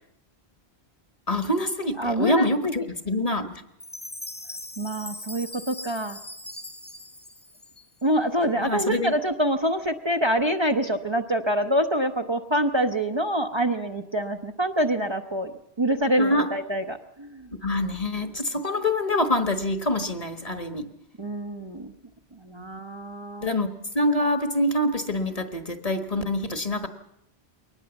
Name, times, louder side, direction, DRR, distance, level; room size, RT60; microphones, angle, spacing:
voice 1, 1.3-3.6 8.6-9.1 16.2-16.5 17.6-20.9 22.6-22.7 23.4-23.7 23.9-26.9, left 1 dB, 35° left, 8 dB, 1.5 m, -25 dB
voice 2, 2.0-2.8 4.8-6.2 8.0-17.5 21.2-21.9 22.3-23.5, equal, 30° right, 5 dB, 0.9 m, -26 dB
Chime, 3.8-8.2, left 1 dB, 10° left, 0.6 m, -40 dB
22.0 x 19.5 x 7.1 m, 0.78 s
omnidirectional pair, 1.1 m